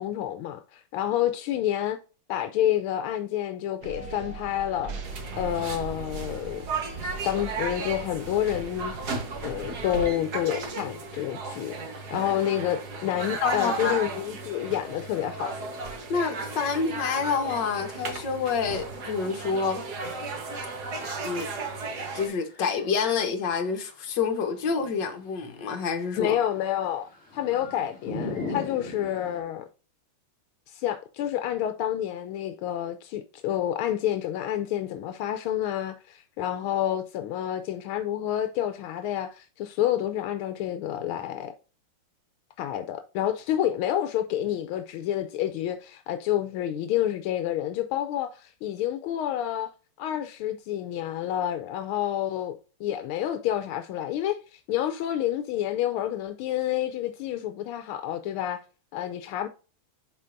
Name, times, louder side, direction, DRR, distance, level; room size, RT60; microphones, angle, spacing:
voice 1, 0.0-2.0 2.3-5.0 5.3-6.6 7.0-8.9 9.4-11.7 12.1-15.6 26.2-27.1 27.3-29.6 30.7-41.5 42.6-49.7 50.0-58.6 58.9-59.5, left 11 dB, 80° left, 1.5 m, -29 dB
sound 1, 3.8-10.1, right 4 dB, 70° right, 1.9 m, -39 dB
sound 2, 5.0-22.3, right 4 dB, 50° right, 1.7 m, -35 dB
voice 2, 13.4-14.0 16.1-19.8 21.2-21.5 22.1-26.4, left 5 dB, 60° left, 1.8 m, -28 dB
sound 3, 19.2-19.3 19.5-21.4 21.9-23.4 24.1-29.4, left 3 dB, 30° left, 2.2 m, -39 dB
11.0 x 4.5 x 2.6 m
omnidirectional pair, 2.3 m